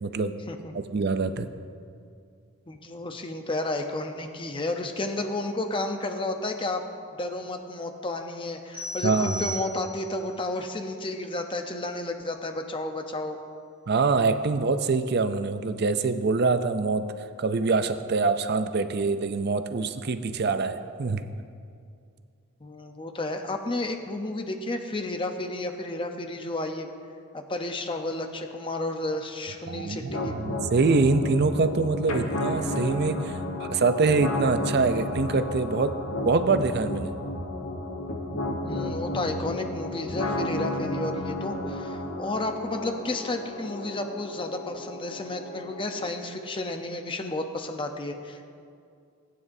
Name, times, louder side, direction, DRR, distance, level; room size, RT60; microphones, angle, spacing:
voice 1, 0.0-0.3 0.7-1.5 9.0-9.5 13.9-17.0 17.4-21.2 29.7-33.4 33.7-35.9 36.2-37.1, right 4 dB, 50° right, 10 dB, 0.5 m, -24 dB
voice 2, 2.7-6.8 7.2-13.4 22.6-26.9 27.3-30.4 38.6-48.4, left 2 dB, 25° left, 5 dB, 0.7 m, -32 dB
sound 1, 8.7-10.3, equal, 15° right, 2.6 m, -36 dB
sound 2, 30.1-46.1, left 1 dB, 80° left, 1.2 m, -33 dB
18.5 x 9.4 x 2.7 m, 2.4 s
head